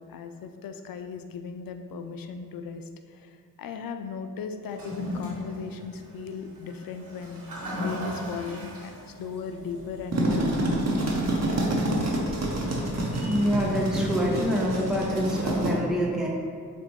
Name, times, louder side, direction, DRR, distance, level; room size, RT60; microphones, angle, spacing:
voice 1, 0.0-2.8 3.1-3.3 3.6-7.5 7.8-10.8 11.0-11.6, left 6 dB, 65° left, 7 dB, 0.5 m, -37 dB
Toilet flush, 4.6-13.9, equal, 65° right, 1.4 m, -39 dB
sound 1, 9.9-15.7, right 1 dB, 45° right, 1.0 m, -27 dB
voice 2, 13.1-16.3, equal, ahead, -3 dB, 0.9 m, -26 dB
6.9 x 2.5 x 3.1 m, 2.2 s
supercardioid pair, 40°, 37 cm